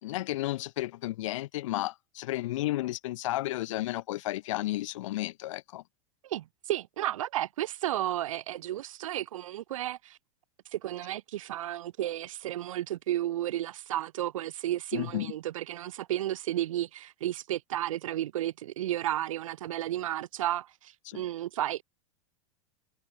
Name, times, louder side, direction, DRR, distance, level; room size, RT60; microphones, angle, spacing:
voice 1, 0.0-5.8 14.9-15.3 21.0-21.2, left 16 dB, 70° left, 1.6 m, -33 dB
voice 2, 6.2-10.2 10.7-21.8, right 13 dB, 80° right, 0.8 m, -33 dB
hypercardioid pair, 105°, 17 cm